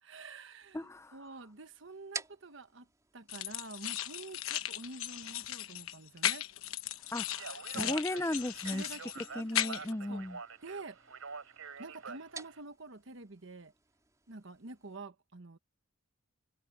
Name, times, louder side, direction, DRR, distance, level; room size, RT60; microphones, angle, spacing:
voice 1, 0.0-2.9 3.1-6.5 7.7-8.0 8.7-9.2 9.5-10.2 10.6-11.0 11.8-13.7 14.3-15.6, right 3 dB, 55° right, 1.2 m, -48 dB
sound 1, 0.6-15.0, right 4 dB, 15° right, 3.3 m, -53 dB
voice 2, 0.7-1.2 7.1-8.8 9.4-10.4, left 1 dB, 15° left, 0.4 m, -36 dB
sound 2, 3.3-9.9, left 11 dB, 70° left, 1.1 m, -37 dB
Speech, 7.3-12.6, right 5 dB, 75° right, 3.7 m, -46 dB
head